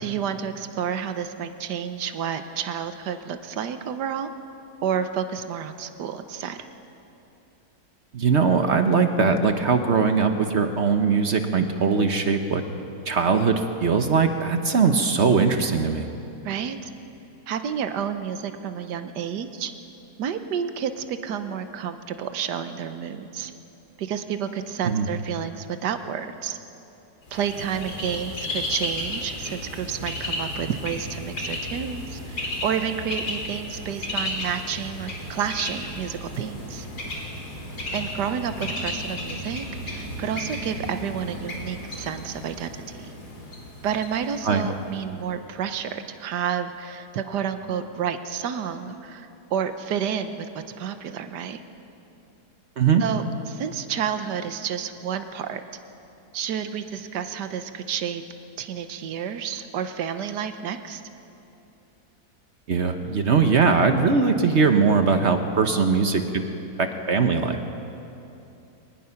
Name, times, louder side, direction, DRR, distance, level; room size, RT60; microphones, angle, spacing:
voice 1, 0.0-4.3 4.8-6.7 16.4-16.9 17.5-19.7 20.2-23.5 24.0-26.6 27.3-36.9 37.9-43.1 43.8-51.6 53.0-55.6 56.3-58.2 58.6-61.0, right 8 dB, 80° right, 9 dB, 1.5 m, -30 dB
voice 2, 8.1-12.6 13.1-16.0 24.8-25.1 44.4-44.7 52.8-53.0 62.7-66.5 66.8-67.6, right 5 dB, 50° right, 7 dB, 1.1 m, -21 dB
Bird, 27.3-45.0, left 1 dB, 70° left, 3.8 m, -33 dB
23.0 x 19.5 x 5.8 m, 2.9 s
omnidirectional pair, 1.8 m